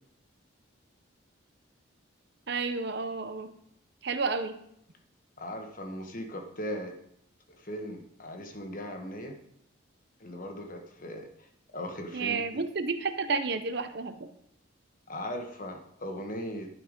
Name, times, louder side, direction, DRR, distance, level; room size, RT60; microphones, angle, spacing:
voice 1, 2.5-3.5 4.0-4.6 12.1-14.3, right 4 dB, 55° right, 9 dB, 0.7 m, -31 dB
voice 2, 5.4-6.9 7.5-9.4 10.2-11.3 11.7-12.6 15.1-16.7, equal, 40° left, 4 dB, 1.3 m, -38 dB
11.0 x 5.8 x 5.2 m, 0.73 s
head